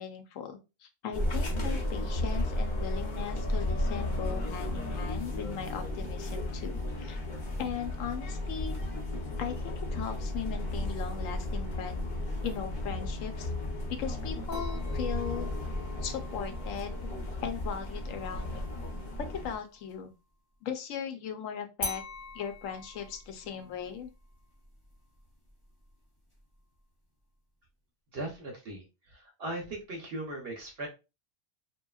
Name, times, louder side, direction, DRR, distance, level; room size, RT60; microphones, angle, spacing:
voice 1, 0.0-7.2 7.6-8.8 9.4-12.0 12.4-13.5 14.0-15.5 16.0-17.1 17.4-18.7 19.2-20.1 20.6-22.0 22.3-24.1, left 8 dB, 90° left, 6 dB, 1.0 m, -38 dB
sound 1, 1.1-19.6, left 1 dB, 45° left, 0.7 m, -34 dB
sound 2, 14.5-20.1 21.8-26.8, left 2 dB, 25° left, 1.2 m, -46 dB
voice 2, 28.1-30.9, right 1 dB, 60° right, 1 dB, 0.8 m, -39 dB
2.9 x 2.4 x 2.2 m, 0.28 s
omnidirectional pair, 1.3 m